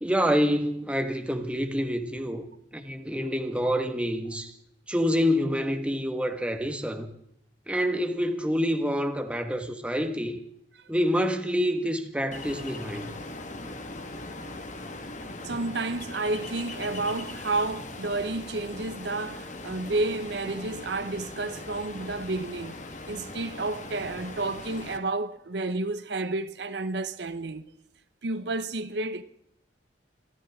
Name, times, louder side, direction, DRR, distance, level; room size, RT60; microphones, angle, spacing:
voice 1, 0.0-2.4 2.7-4.5 4.9-7.1 7.7-10.4 10.9-13.1, equal, 5° right, 1.4 m, -27 dB
Ocean, 12.3-25.0, left 2 dB, 45° left, 1.6 m, -40 dB
voice 2, 15.4-22.8 23.1-27.6 28.2-29.2, right 2 dB, 65° right, 0.8 m, -31 dB
26.0 x 14.0 x 3.6 m
head